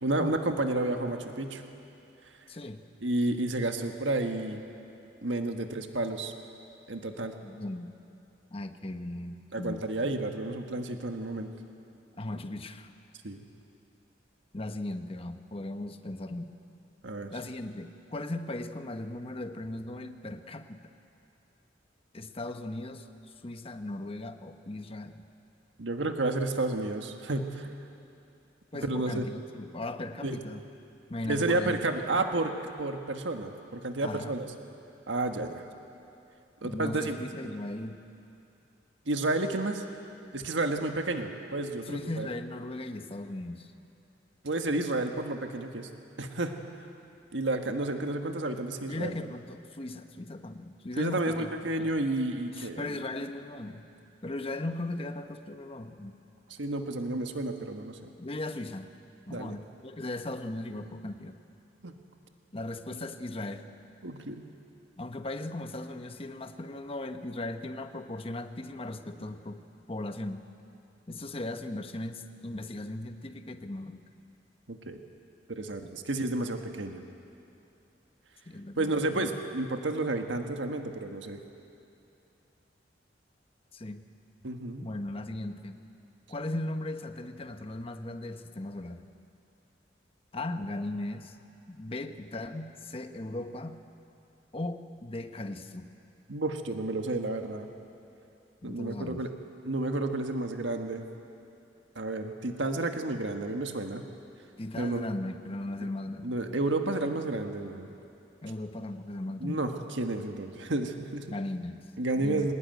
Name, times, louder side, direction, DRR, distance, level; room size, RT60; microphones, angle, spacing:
voice 1, 0.0-1.6 3.0-4.6 5.2-6.3 6.9-7.3 9.5-11.5 13.2-13.4 17.0-17.3 25.8-27.7 28.8-29.2 30.2-30.4 31.2-34.5 35.1-35.6 36.6-37.2 39.1-39.8 40.3-42.3 44.4-45.9 46.2-46.6 47.3-49.1 51.0-53.0 56.5-58.1 59.3-59.6 61.8-62.0 64.0-64.5 74.7-75.0 75.5-77.0 78.8-81.4 84.4-84.9 96.3-97.7 98.6-99.3 99.6-101.0 101.9-104.0 104.8-105.1 106.2-107.9 109.4-111.3 112.0-112.5, right 2 dB, 90° right, 5 dB, 1.6 m, -31 dB
voice 2, 2.5-2.8 7.4-7.9 8.5-9.9 12.2-12.9 14.5-16.5 17.3-20.9 22.1-23.1 23.4-25.2 28.7-30.7 31.1-31.8 34.0-34.4 36.6-38.0 41.9-43.7 48.8-51.5 51.8-51.9 52.5-53.9 54.2-56.2 58.2-58.9 59.3-61.4 62.5-63.7 65.0-70.5 71.1-74.0 75.8-75.9 78.5-79.3 83.7-84.0 84.8-85.8 86.3-89.0 90.3-91.4 91.7-93.8 94.5-95.9 98.6-99.2 104.6-106.4 108.4-109.7 111.3-111.9 112.2-112.5, left 2 dB, 30° left, 8 dB, 1.1 m, -37 dB
23.0 x 20.0 x 9.3 m, 2.7 s
head